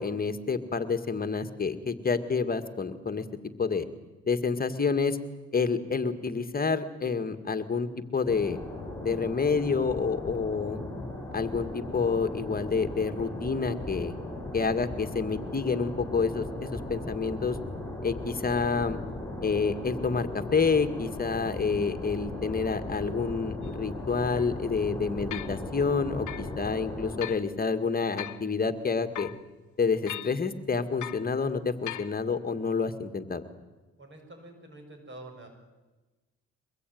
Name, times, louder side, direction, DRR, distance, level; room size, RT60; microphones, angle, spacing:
voice 1, 0.0-3.3 3.6-3.9 4.3-5.2 5.5-8.6 9.0-10.8 11.3-14.1 14.5-17.6 18.0-19.0 19.4-29.3 29.8-33.4, left 5 dB, 30° left, 10 dB, 2.0 m, -28 dB
sound 1, 8.2-27.2, left 1 dB, 10° left, 7.5 m, -38 dB
sound 2, 23.6-23.7 24.4-24.5 25.3-25.6 26.3-26.5 27.2-27.4 28.2-28.5 29.1-29.4 30.1-30.4 31.0-31.3 31.9-32.1, left 13 dB, 70° left, 1.0 m, -38 dB
voice 2, 34.0-35.5, right 2 dB, 40° right, 5 dB, 6.7 m, -47 dB
24.0 x 21.5 x 9.4 m, 1.2 s
cardioid pair, 90°, 30 cm